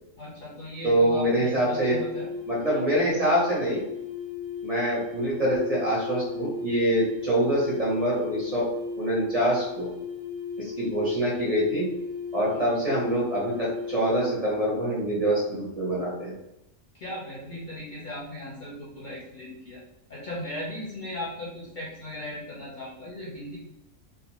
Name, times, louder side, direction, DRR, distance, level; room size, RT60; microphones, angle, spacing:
voice 1, 0.2-2.3 2.7-3.1 12.5-12.9 17.0-19.8 20.1-23.6, left 1 dB, 45° left, -7 dB, 0.7 m, -37 dB
voice 2, 0.8-2.0 2.5-3.8 4.6-8.7 9.0-9.9 10.6-11.9 12.3-16.3, right 1 dB, 35° right, -7 dB, 0.7 m, -25 dB
sound 1, 1.7-14.4, left 4 dB, 15° left, 0.4 m, -36 dB
2.5 x 2.2 x 2.9 m, 0.85 s
omnidirectional pair, 1.3 m